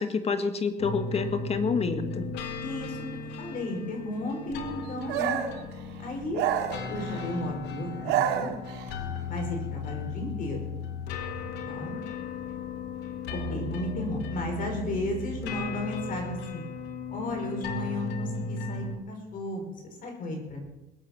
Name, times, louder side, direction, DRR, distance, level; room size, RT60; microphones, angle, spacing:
voice 1, 0.0-2.3, left 5 dB, 35° left, 9 dB, 1.8 m, -28 dB
sound 1, 0.8-19.0, left 4 dB, 90° left, 2.0 m, -36 dB
voice 2, 2.6-3.0 3.4-5.4 6.0-6.4 6.9-8.5 9.3-10.7 11.7-12.0 13.3-16.6 17.1-20.6, left 1 dB, 55° left, 2 dB, 5.2 m, -34 dB
sound 2, 5.1-5.6 6.3-7.3 7.9-8.9, right 10 dB, 85° right, 2.2 m, -28 dB
21.0 x 8.5 x 7.4 m, 0.94 s
cardioid pair, 110°, 17 cm